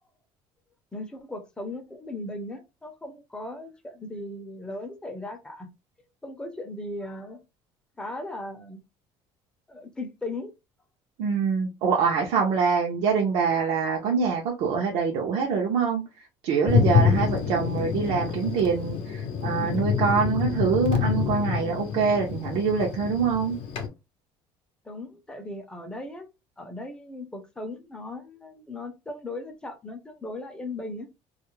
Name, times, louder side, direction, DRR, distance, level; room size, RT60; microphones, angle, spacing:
voice 1, 0.9-5.7 6.2-7.4 8.0-8.8 9.7-10.5 24.8-26.3 26.6-31.1, left 2 dB, 10° left, 0.5 m, -37 dB
voice 2, 11.2-16.0 16.4-23.6, right 5 dB, 75° right, 0.6 m, -25 dB
Thunder, 16.7-23.9, left 6 dB, 60° left, 0.6 m, -26 dB
2.4 x 2.0 x 2.9 m
cardioid pair, 150°, 10 cm